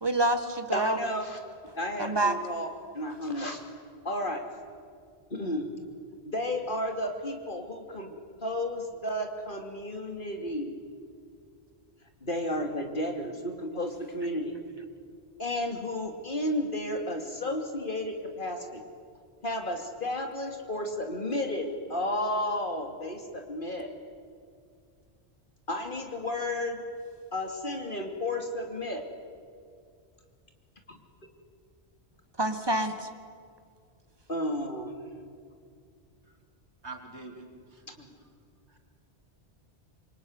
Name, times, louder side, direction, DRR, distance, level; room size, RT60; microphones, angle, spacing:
voice 1, 0.0-1.0 2.0-2.4 32.4-33.1, right 2 dB, 20° right, 8 dB, 1.8 m, -27 dB
voice 2, 0.7-1.4 1.8-2.7 2.9-3.6 4.0-4.4 5.3-5.7 6.2-10.7 12.2-14.6 15.4-18.8 19.4-23.9 25.7-26.8 27.3-29.0 30.9-31.0 34.3-35.2, left 1 dB, 50° left, 4 dB, 2.9 m, -32 dB
voice 3, 36.8-38.1 38.7-38.8, right 3 dB, 80° right, 3 dB, 3.6 m, -45 dB
26.5 x 23.0 x 9.6 m, 2.2 s
omnidirectional pair, 1.1 m